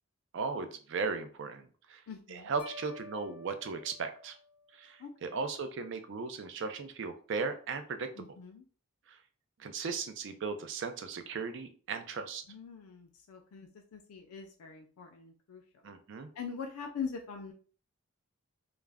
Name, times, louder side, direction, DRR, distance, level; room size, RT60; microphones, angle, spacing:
voice 1, 0.3-2.0 2.3-4.3 4.7-8.1 9.1-9.2 9.6-12.4 15.8-16.3, right 4 dB, 55° right, 8 dB, 0.4 m, -37 dB
voice 2, 2.1-2.5 5.0-5.4 8.1-8.7 12.5-15.8 16.3-17.5, left 6 dB, 80° left, 3 dB, 0.4 m, -43 dB
sound 1, 2.6-4.9, left 4 dB, 30° left, 0.7 m, -50 dB
2.3 x 2.0 x 3.3 m, 0.41 s
head